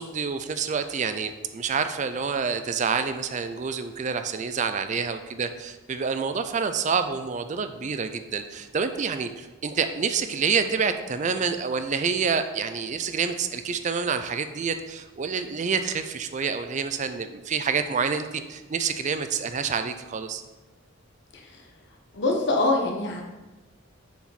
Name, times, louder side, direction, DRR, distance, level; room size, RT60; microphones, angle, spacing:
voice 1, 0.0-20.4, right 5 dB, 35° right, 9 dB, 0.4 m, -28 dB
voice 2, 22.1-23.2, left 2 dB, 60° left, 0 dB, 1.1 m, -24 dB
6.8 x 5.0 x 4.1 m, 1.1 s
head